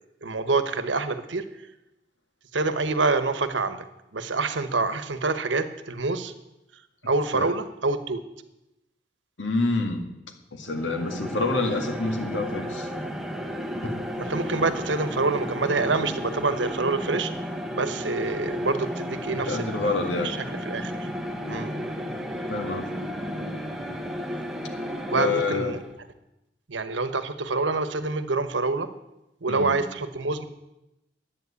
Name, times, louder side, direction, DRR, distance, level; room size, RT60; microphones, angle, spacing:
voice 1, 0.2-1.4 2.5-3.8 4.1-6.3 7.1-8.2 14.2-17.3 17.7-19.9 20.2-20.4 20.7-21.1 21.5-21.7 25.1-25.8 26.7-28.9 29.4-30.5, right 3 dB, 75° right, 10 dB, 1.1 m, -26 dB
voice 2, 9.4-10.1 10.5-12.9 19.4-20.4 22.5-22.9 25.1-25.8 29.5-29.8, left 3 dB, 85° left, 5 dB, 1.9 m, -27 dB
sound 1, 10.7-26.0, equal, ahead, 1.3 m, -33 dB
11.5 x 9.0 x 8.2 m, 0.91 s
head